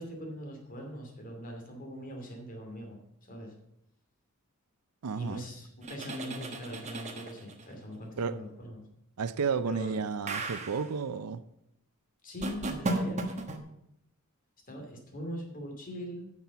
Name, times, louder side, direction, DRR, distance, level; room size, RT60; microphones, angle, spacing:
voice 1, 0.0-3.0 3.3-3.5 5.1-8.8 9.6-10.0 12.2-13.3 14.7-16.3, equal, 40° left, 2.5 m, -41 dB
voice 2, 5.0-5.4 8.2-8.4 9.2-11.4, right 5 dB, 85° right, 0.5 m, -32 dB
sound 1, 5.8-7.7 10.3-10.9 12.4-13.6, right 2 dB, 30° right, 1.1 m, -35 dB
9.7 x 6.0 x 6.9 m
head